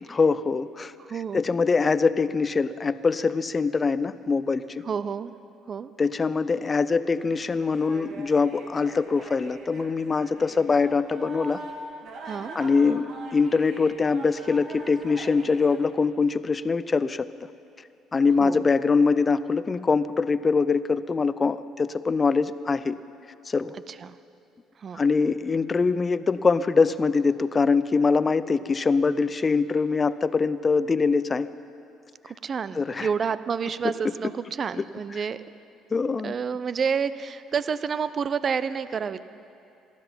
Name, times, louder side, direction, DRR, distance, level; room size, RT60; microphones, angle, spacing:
voice 1, 0.1-0.9 1.3-4.8 6.0-11.6 12.5-17.3 18.1-23.0 23.5-23.7 24.9-31.5 32.8-33.1 34.8-34.9 35.9-36.3, left 4 dB, 30° left, 15 dB, 0.5 m, -23 dB
voice 2, 1.0-1.4 4.8-5.3 5.7-5.9 12.3-12.6 18.4-18.7 23.9-24.2 24.8-25.0 32.2-35.4 36.2-39.2, right 6 dB, 40° right, 15 dB, 0.6 m, -29 dB
sound 1, 7.2-15.8, right 2 dB, 60° right, 2.1 m, -42 dB
19.0 x 13.0 x 5.6 m, 2.6 s
figure-of-eight pair, 50°, 0 cm